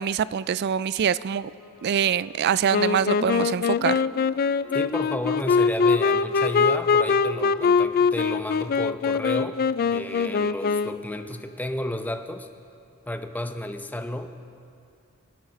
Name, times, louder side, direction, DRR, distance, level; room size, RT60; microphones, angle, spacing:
voice 1, 0.0-1.5 1.8-4.0, right 8 dB, 50° right, 18 dB, 0.3 m, -24 dB
sound 1, 1.3-11.7, left 2 dB, 65° left, 3.1 m, -49 dB
Wind instrument woodwind instrument, 2.7-11.1, left 5 dB, 45° left, 0.3 m, -23 dB
voice 2, 4.7-9.6 9.9-12.5 13.1-14.3, left 1 dB, 10° left, 7 dB, 0.7 m, -32 dB
26.0 x 8.8 x 5.3 m, 2.5 s
head